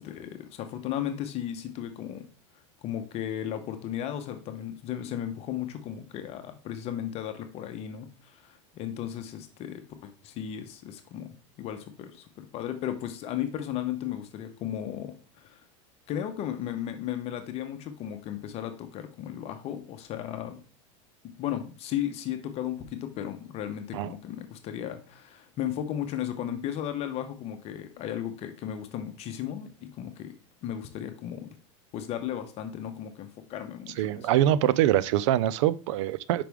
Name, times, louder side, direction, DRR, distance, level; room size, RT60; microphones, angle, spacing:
voice 1, 0.0-2.2 2.8-15.6 16.1-20.6 21.4-30.3 30.6-31.5 31.9-34.3, left 10 dB, 40° left, 0.9 m, -35 dB
voice 2, 34.0-36.4, right 12 dB, 70° right, 0.5 m, -24 dB
5.8 x 5.1 x 3.5 m
supercardioid pair, 130°, 16 cm